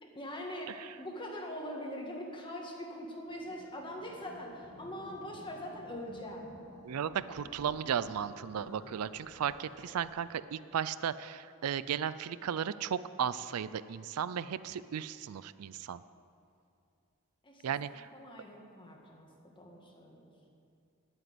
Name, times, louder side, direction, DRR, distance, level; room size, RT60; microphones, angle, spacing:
voice 1, 0.0-6.5 17.4-17.6 18.1-20.3, equal, 20° left, 0 dB, 1.8 m, -43 dB
sound 1, 3.2-10.1, left 1 dB, 80° left, 3.4 m, -54 dB
voice 2, 6.8-16.0 17.6-18.1, right 8 dB, 75° right, 16 dB, 0.4 m, -35 dB
11.0 x 9.2 x 7.9 m, 2.5 s
head